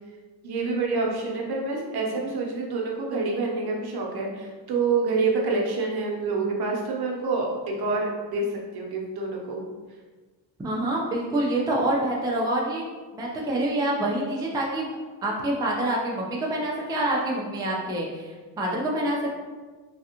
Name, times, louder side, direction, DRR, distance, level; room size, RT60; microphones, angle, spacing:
voice 1, 0.4-8.4 8.7-9.6, right 3 dB, 60° right, -1 dB, 0.8 m, -27 dB
voice 2, 10.6-12.8 13.1-14.8 15.2-19.3, right 1 dB, 10° right, -3 dB, 0.4 m, -26 dB
3.3 x 2.4 x 2.8 m, 1.3 s
cardioid pair, 115°, 42 cm